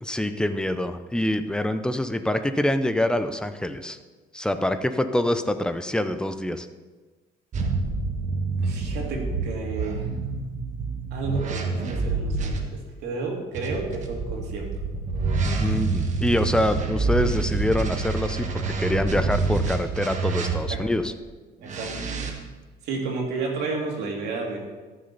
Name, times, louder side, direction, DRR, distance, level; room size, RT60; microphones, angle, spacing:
voice 1, 0.0-4.0 4.3-6.7 15.4-21.1, left 1 dB, 5° left, 10 dB, 0.6 m, -25 dB
sound 1, 7.5-12.6 13.5-20.9 21.6-22.3, right 4 dB, 45° right, 1.5 m, -27 dB
voice 2, 8.6-10.1 11.1-14.6 20.7-20.8 21.6-21.9 22.8-24.6, right 4 dB, 85° right, 0 dB, 2.4 m, -31 dB
14.0 x 6.5 x 4.0 m, 1.3 s
cardioid pair, 110°, 17 cm